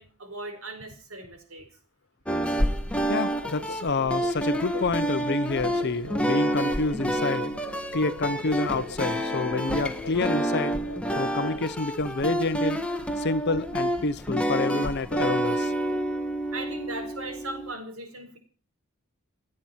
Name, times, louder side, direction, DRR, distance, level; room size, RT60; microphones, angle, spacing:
voice 1, 0.0-1.7 16.5-18.4, right 2 dB, 65° right, 6 dB, 4.8 m, -38 dB
sound 1, 2.2-17.7, equal, 5° left, 1.4 m, -28 dB
voice 2, 3.1-7.5 7.9-10.7 11.1-12.8 13.2-15.7, left 3 dB, 50° left, 15 dB, 0.8 m, -28 dB
sound 2, 3.4-11.7, left 3 dB, 75° left, 1.1 m, -41 dB
sound 3, 5.2-15.0, left 1 dB, 90° right, 5.4 m, -55 dB
29.0 x 10.0 x 4.5 m, 0.42 s
head